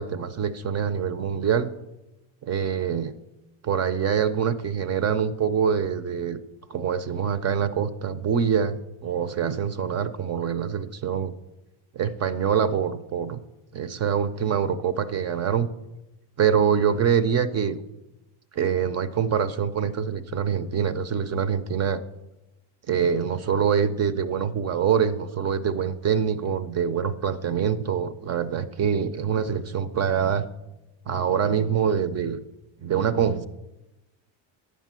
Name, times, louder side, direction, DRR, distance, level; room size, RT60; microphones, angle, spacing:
voice 1, 0.0-1.7 2.4-3.1 3.6-6.4 6.7-11.3 11.9-13.4 13.7-15.7 16.4-17.8 18.5-22.0 22.9-30.4 31.1-32.4 32.8-33.5, right 7 dB, 35° right, 14 dB, 0.5 m, -25 dB
10.5 x 8.3 x 7.4 m, 0.97 s
cardioid pair, 160°, 47 cm